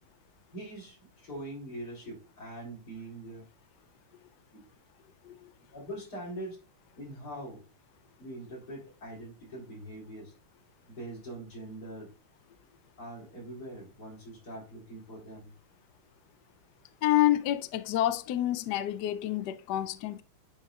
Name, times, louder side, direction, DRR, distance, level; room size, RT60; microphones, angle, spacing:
voice 1, 0.5-3.5 4.5-4.6 5.7-6.6 7.0-7.6 8.2-10.3 10.9-12.1 13.0-15.5, right 1 dB, 45° left, 4.2 m, -43 dB
voice 2, 17.0-20.2, left 14 dB, 85° left, 0.9 m, -28 dB
10.5 x 4.3 x 2.4 m
omnidirectional pair, 2.4 m